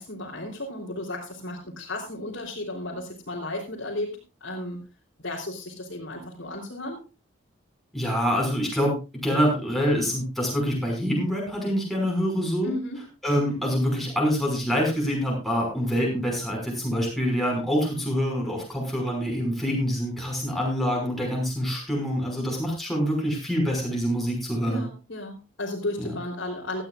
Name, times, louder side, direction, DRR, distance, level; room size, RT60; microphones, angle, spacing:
voice 1, 0.0-4.8 5.2-7.0 12.6-13.0 24.6-26.8, left 1 dB, 65° left, -5 dB, 3.6 m, -34 dB
voice 2, 7.9-12.7 13.2-24.8 26.0-26.1, equal, ahead, -2 dB, 5.8 m, -26 dB
17.5 x 13.5 x 2.5 m, 0.29 s
head